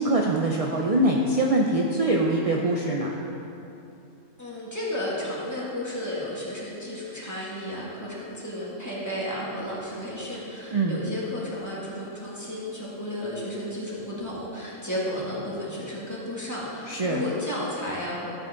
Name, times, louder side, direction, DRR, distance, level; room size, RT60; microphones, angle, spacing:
voice 1, 0.0-3.2 10.7-11.0 16.9-17.2, right 1 dB, 45° right, -1 dB, 0.5 m, -23 dB
voice 2, 4.4-18.3, left 1 dB, 10° left, -7 dB, 2.2 m, -33 dB
13.0 x 7.8 x 3.9 m, 2.8 s
omnidirectional pair, 1.5 m